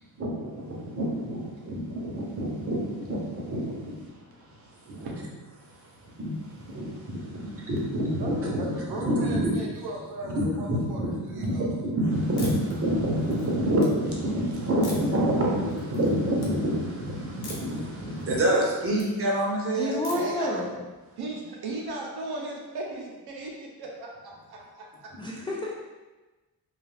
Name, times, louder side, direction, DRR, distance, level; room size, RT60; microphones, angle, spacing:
voice 1, 0.2-5.1 5.6-9.8 10.2-20.0, equal, 40° right, -3 dB, 0.7 m, -28 dB
voice 2, 4.9-5.2 8.2-8.3 8.6-11.0 11.3-11.7 20.1-20.6 21.2-25.1 25.3-25.5, right 2 dB, 80° right, -2 dB, 0.6 m, -37 dB
sound 1, 12.4-12.7 13.2-13.9 14.8-15.2 15.7-16.1 16.4-16.5 17.4-17.8 18.2-19.1 20.0-20.4, left 3 dB, 85° left, 0.7 m, -42 dB
voice 3, 19.7-20.8 25.2-25.7, left 1 dB, 15° left, -5 dB, 0.3 m, -30 dB
2.3 x 2.3 x 3.2 m, 1.2 s
wide cardioid pair, 130°, 38 cm